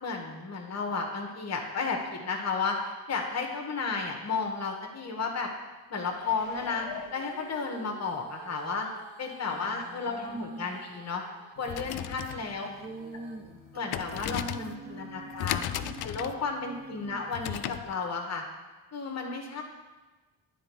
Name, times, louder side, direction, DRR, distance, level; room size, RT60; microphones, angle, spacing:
voice 1, 0.0-5.5 5.9-6.8 7.1-8.9 9.2-11.2 11.6-12.7 13.7-15.7 16.0-18.4 18.9-19.6, left 4 dB, 30° left, 2 dB, 1.2 m, -33 dB
Female singing, 6.0-12.0 12.4-16.7 17.3-17.4, right 5 dB, 60° right, 1.4 m, -50 dB
sound 1, 6.1-8.2 8.7-8.8, left 7 dB, 70° left, 0.8 m, -45 dB
voice 2, 9.5-10.8 12.2-15.3 15.7-16.0 16.6-17.3, right 2 dB, 20° right, 7 dB, 0.8 m, -44 dB
sound 2, 11.6-17.9, left 12 dB, 50° left, 0.5 m, -37 dB
9.2 x 4.0 x 4.6 m, 1.2 s
hypercardioid pair, 45°, 49 cm